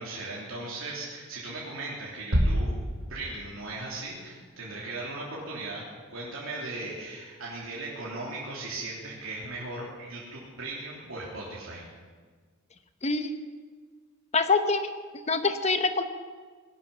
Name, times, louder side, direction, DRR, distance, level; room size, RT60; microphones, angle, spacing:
voice 1, 0.0-2.7 3.1-5.8 6.1-11.9, right 2 dB, 85° right, -6 dB, 3.3 m, -38 dB
sound 1, 2.3-3.7, equal, 70° right, 1.5 m, -27 dB
voice 2, 13.0-13.3 14.3-14.9 15.3-16.0, left 3 dB, 30° left, 9 dB, 0.9 m, -25 dB
19.0 x 12.0 x 5.5 m, 1.5 s
head